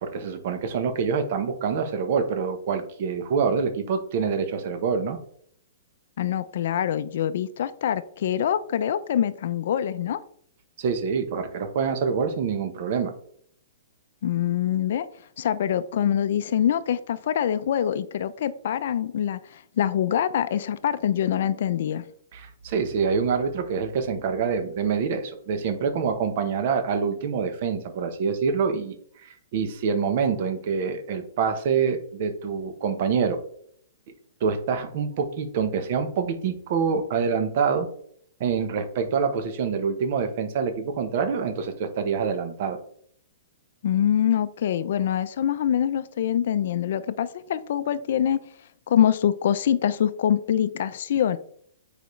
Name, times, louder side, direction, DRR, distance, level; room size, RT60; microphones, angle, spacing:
voice 1, 0.0-5.2 10.8-13.1 22.3-29.0 29.2-33.4 34.4-37.9 38.4-42.8, right 6 dB, 45° right, 7 dB, 0.9 m, -26 dB
voice 2, 6.2-10.2 14.2-15.1 15.4-22.0 43.8-48.4 48.9-51.4, left 10 dB, 55° left, 13 dB, 0.5 m, -24 dB
9.1 x 5.0 x 3.2 m, 0.63 s
hypercardioid pair, 165°, 0 cm